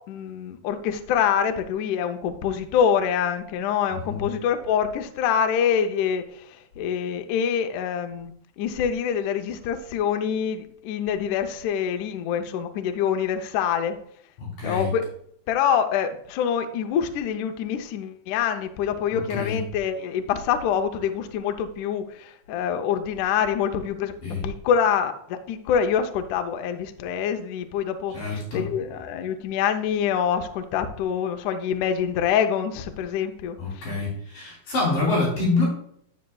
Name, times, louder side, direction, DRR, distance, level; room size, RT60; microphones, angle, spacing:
voice 1, 0.1-6.5 6.8-14.0 14.6-15.1 15.5-28.1 28.5-33.9, left 8 dB, 85° left, 7 dB, 1.7 m, -25 dB
voice 2, 3.9-4.3 14.4-14.9 19.1-19.6 24.2-24.4 28.1-28.7 33.6-35.7, left 3 dB, 60° left, -5 dB, 4.9 m, -26 dB
9.4 x 8.7 x 2.3 m, 0.69 s
omnidirectional pair, 4.5 m